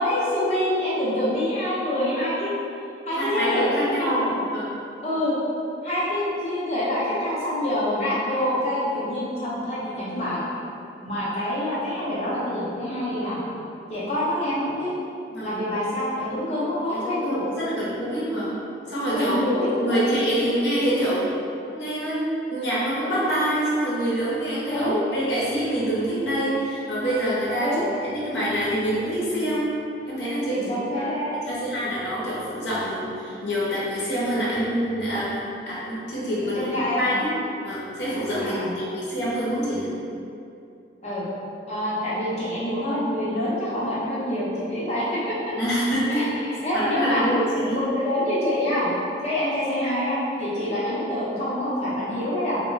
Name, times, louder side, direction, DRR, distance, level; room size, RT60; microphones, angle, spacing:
voice 1, 0.0-2.5 3.1-4.3 5.0-5.3 5.8-10.4 11.0-13.4 13.9-14.9 15.4-17.4 19.1-20.0 24.7-25.0 27.6-27.8 30.5-31.3 36.4-37.2 38.3-38.7 41.0-41.3 41.7-45.4 46.1-47.2 47.7-48.9 49.2-52.6, left 1 dB, 40° left, -9 dB, 0.8 m, -26 dB
voice 2, 3.1-4.8 15.3-15.6 17.0-18.6 18.9-19.4 19.8-21.3 21.7-29.8 30.0-31.1 31.4-35.4 35.7-36.7 37.0-37.3 37.6-39.9 45.6-46.2 46.7-47.7, equal, 80° left, -8 dB, 0.8 m, -26 dB
2.2 x 2.1 x 3.8 m, 2.6 s
head